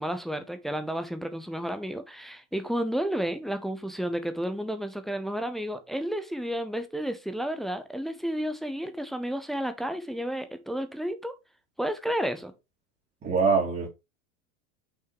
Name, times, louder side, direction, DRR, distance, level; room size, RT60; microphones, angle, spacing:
voice 1, 0.0-11.3 11.8-12.5, equal, ahead, 0.4 m, -31 dB
voice 2, 13.2-13.9, right 5 dB, 25° right, 2.1 m, -23 dB
5.8 x 3.6 x 4.6 m
supercardioid pair, 130°, 42 cm